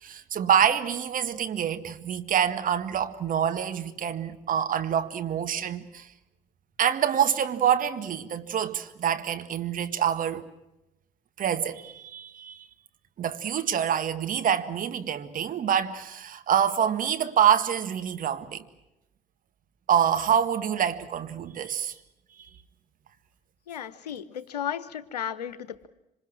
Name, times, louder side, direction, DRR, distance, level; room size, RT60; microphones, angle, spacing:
voice 1, 0.0-6.1 6.8-10.4 11.4-12.7 13.2-18.6 19.9-21.9 22.4-22.5, right 9 dB, 40° right, 1.8 m, -26 dB
voice 2, 23.7-25.9, left 9 dB, 80° left, 1.1 m, -34 dB
26.5 x 26.5 x 6.2 m
figure-of-eight pair, 55°, 20 cm